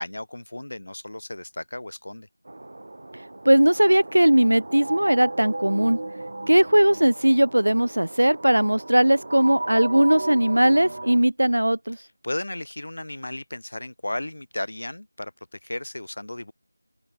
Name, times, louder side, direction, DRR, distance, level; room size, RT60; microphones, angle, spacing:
voice 1, 0.0-2.3 12.0-16.5, left 1 dB, 55° left, 6.7 m, -34 dB
sound 1, 2.5-11.2, right 2 dB, 45° right, 3.7 m, -35 dB
voice 2, 3.5-6.0 6.5-12.0, right 1 dB, 80° right, 4.0 m, -19 dB
open air
figure-of-eight pair, 175°, 0 cm